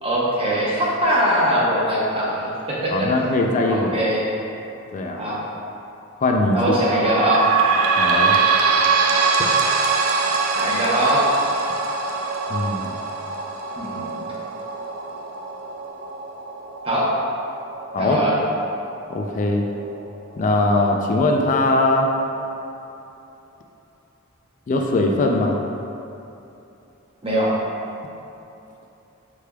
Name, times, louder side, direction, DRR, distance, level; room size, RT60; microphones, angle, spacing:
voice 1, 0.0-3.1 3.7-4.2 5.2-5.4 6.5-7.5 10.5-11.3 13.8-14.3 16.8-17.1 18.0-18.3 27.2-27.5, right 1 dB, 25° right, -6 dB, 0.8 m, -21 dB
voice 2, 2.9-3.9 4.9-5.2 6.2-6.6 8.0-8.3 12.5-12.9 17.9-18.2 19.1-19.6 20.4-22.1 24.7-25.6, left 2 dB, 40° left, 1 dB, 0.3 m, -20 dB
sound 1, 6.8-20.0 20.6-20.7 20.9-21.0 21.8-21.9, right 4 dB, 80° right, 0.4 m, -23 dB
6.0 x 3.3 x 2.3 m, 2.9 s
head